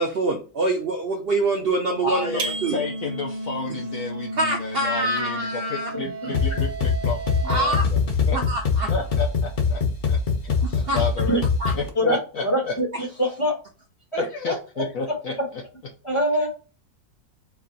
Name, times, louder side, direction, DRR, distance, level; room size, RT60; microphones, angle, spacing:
voice 1, 0.0-2.8 4.3-5.9 7.4-7.9 8.3-8.9 10.6-11.0 11.6-11.7, right 2 dB, 85° right, 2 dB, 0.5 m, -25 dB
sound 1, 1.5-7.8, right 1 dB, 45° right, 0.7 m, -34 dB
voice 2, 2.0-8.0 8.3-8.4 8.9-10.2 10.4-11.4 11.8-12.7 14.2-15.4, left 4 dB, 65° left, 2 dB, 0.9 m, -31 dB
sound 2, 2.4-3.5, right 3 dB, 60° right, 1.1 m, -33 dB
sound 3, 6.3-11.9, left 5 dB, 80° left, 0.4 m, -23 dB
voice 3, 12.0-13.5 14.1-14.5 16.0-16.5, equal, 20° left, -1 dB, 1.4 m, -24 dB
4.7 x 2.5 x 3.9 m, 0.34 s
omnidirectional pair, 1.9 m